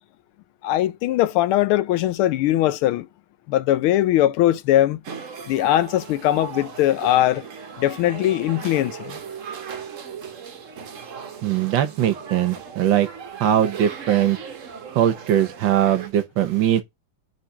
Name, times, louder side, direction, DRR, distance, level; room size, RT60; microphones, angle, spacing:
voice 1, 0.6-3.1 3.5-5.0 5.5-7.4 7.8-9.2, left 13 dB, 80° left, 1.5 m, -20 dB
sound 1, 5.0-16.1, right 6 dB, 50° right, 1.0 m, -37 dB
voice 2, 11.4-13.1 13.4-14.4 14.9-16.8, right 11 dB, 70° right, 1.3 m, -20 dB
4.9 x 4.0 x 5.7 m
omnidirectional pair, 2.4 m